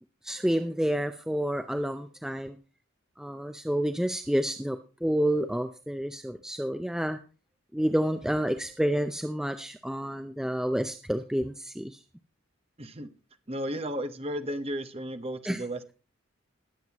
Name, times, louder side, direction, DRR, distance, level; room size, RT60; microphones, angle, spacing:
voice 1, 0.2-2.6 3.2-7.2 7.7-12.0 15.5-15.6, equal, 5° right, 7 dB, 0.5 m, -29 dB
voice 2, 12.8-13.1 13.5-15.9, equal, 30° right, 8 dB, 1.2 m, -34 dB
20.0 x 7.9 x 3.0 m, 0.34 s
head